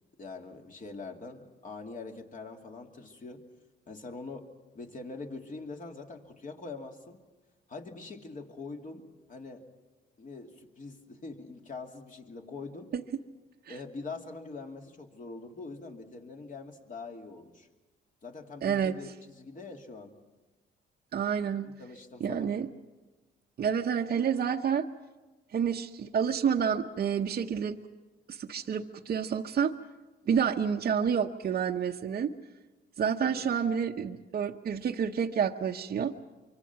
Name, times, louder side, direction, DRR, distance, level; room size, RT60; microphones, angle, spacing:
voice 1, 0.2-3.4 3.9-4.5 4.7-7.2 7.7-9.6 10.2-12.9 13.7-17.7 18.2-20.1 21.6-22.5 33.2-33.5, left 3 dB, 40° left, 2 dB, 2.7 m, -43 dB
voice 2, 18.6-19.0 21.1-21.7 22.2-22.7 23.6-24.9 25.5-27.8 28.3-29.7 30.3-32.3 33.0-36.1, right 7 dB, 50° right, 1 dB, 0.9 m, -29 dB
24.5 x 24.5 x 5.9 m, 1.2 s
cardioid pair, 90°, 20 cm